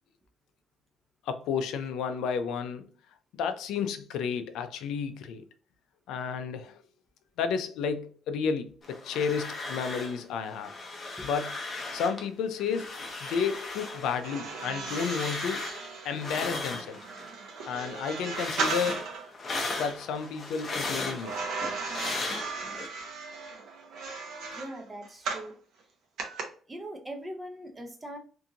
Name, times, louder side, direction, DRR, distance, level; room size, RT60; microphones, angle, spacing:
voice 1, 1.2-2.9 3.4-5.5 6.1-6.8 7.4-10.7 11.2-11.6 11.9-15.7 16.0-17.0 17.7-19.0 19.7-21.4, left 6 dB, 80° left, 0.4 m, -32 dB
sound 1, 8.8-10.2 10.5-12.3 12.6-17.3 17.7-22.9, left 3 dB, 35° left, 0.6 m, -37 dB
sound 2, 14.2-19.3 21.2-25.5 26.2-26.4, right 4 dB, 70° right, 0.7 m, -36 dB
voice 2, 24.6-25.6 26.7-28.2, right 1 dB, 15° right, 0.5 m, -41 dB
2.6 x 2.5 x 2.7 m
cardioid pair, 155°, 0 cm